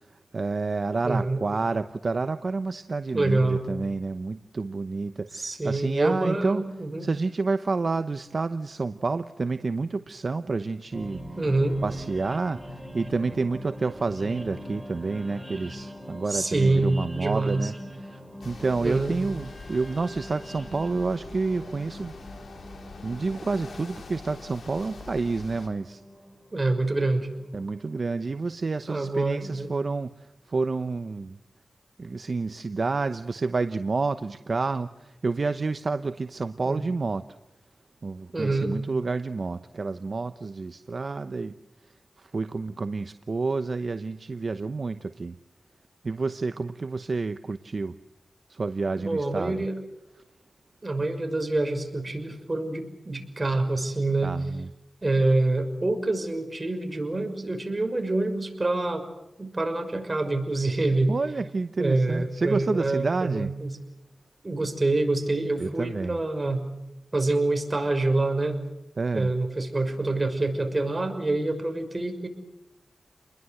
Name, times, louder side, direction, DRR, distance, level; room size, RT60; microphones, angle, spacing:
voice 1, 0.3-6.7 7.0-11.2 11.8-17.7 18.0-22.1 23.0-26.0 27.5-30.1 30.5-31.4 32.0-37.2 38.0-41.5 42.2-45.3 46.0-47.9 48.5-49.6 54.2-54.7 61.1-63.5 65.6-66.2 69.0-69.3, right 3 dB, 60° right, 10 dB, 0.9 m, -29 dB
voice 2, 1.0-1.4 3.1-3.6 5.3-7.1 11.4-11.8 16.3-17.7 18.8-19.1 26.5-27.3 28.9-29.7 36.6-36.8 38.3-38.7 49.0-49.8 50.8-54.4 55.0-59.1 59.4-61.1 61.8-63.8 64.4-66.7 67.1-68.6 69.1-72.3, right 2 dB, 35° right, 6 dB, 6.1 m, -26 dB
sound 1, 10.9-28.1, equal, 10° right, 5.2 m, -43 dB
sound 2, 18.4-25.7, left 4 dB, 85° left, 3.4 m, -44 dB
30.0 x 21.5 x 7.9 m, 0.93 s
cardioid pair, 50°, 0 cm